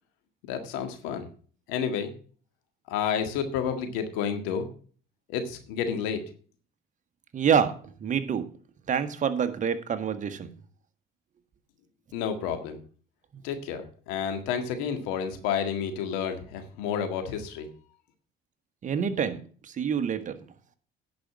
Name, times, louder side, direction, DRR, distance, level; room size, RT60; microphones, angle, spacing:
voice 1, 0.5-1.3 1.7-2.1 2.9-4.7 5.3-6.2 12.1-12.8 13.4-17.7, left 7 dB, 85° left, 7 dB, 1.8 m, -30 dB
voice 2, 7.3-7.7 8.0-8.5 8.9-10.5 18.8-20.4, right 7 dB, 40° right, 9 dB, 1.4 m, -27 dB
10.5 x 5.2 x 7.3 m, 0.43 s
supercardioid pair, 85°, 19 cm